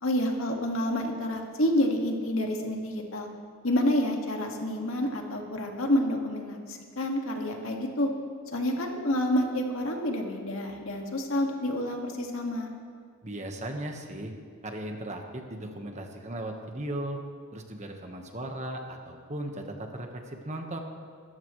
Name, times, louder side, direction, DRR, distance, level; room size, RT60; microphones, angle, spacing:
voice 1, 0.0-3.3 3.6-8.1 8.5-12.7, left 1 dB, 70° left, 1 dB, 2.0 m, -28 dB
voice 2, 13.2-14.3 14.6-17.2 17.5-20.8, right 1 dB, 35° right, 3 dB, 1.4 m, -37 dB
25.0 x 14.0 x 3.2 m, 2.1 s
head